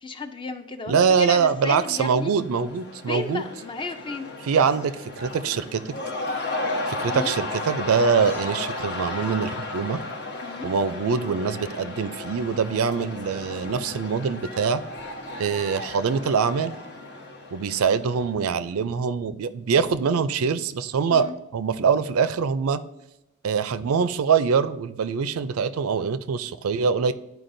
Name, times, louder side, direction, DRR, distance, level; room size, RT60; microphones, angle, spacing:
voice 1, 0.0-2.3 3.1-4.3 7.1-7.3 10.4-10.7 21.1-21.4, left 3 dB, 25° left, 8 dB, 0.4 m, -33 dB
voice 2, 0.9-3.4 4.4-6.0 6.9-10.0 10.6-14.8 15.4-16.7 17.5-22.8 23.4-27.1, right 6 dB, 70° right, 13 dB, 0.4 m, -24 dB
Cheering / Crowd, 1.7-18.6, left 2 dB, 55° left, 1.0 m, -34 dB
11.5 x 4.7 x 2.6 m, 0.93 s
head